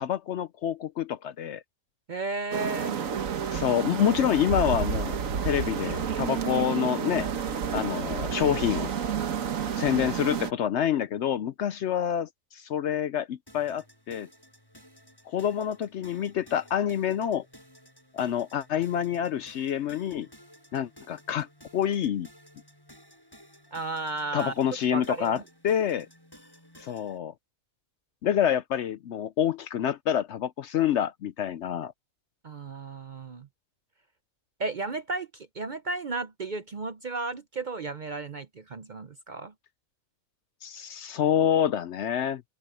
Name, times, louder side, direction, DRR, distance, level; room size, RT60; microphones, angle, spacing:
voice 1, 0.0-1.6 3.5-7.3 7.7-8.9 9.8-14.3 15.3-17.5 18.1-20.3 20.7-21.5 21.7-22.3 24.3-26.1 26.8-27.3 28.2-31.9 40.6-42.4, left 9 dB, 65° left, 0.8 m, -27 dB
voice 2, 2.1-3.0 23.7-24.5 24.9-25.4 32.4-33.5 34.6-39.5, right 3 dB, 45° right, 0.6 m, -34 dB
sound 1, 2.5-10.5, right 7 dB, 70° right, 1.5 m, -30 dB
sound 2, 13.5-27.2, equal, 15° left, 5.9 m, -55 dB
open air
omnidirectional pair, 1.5 m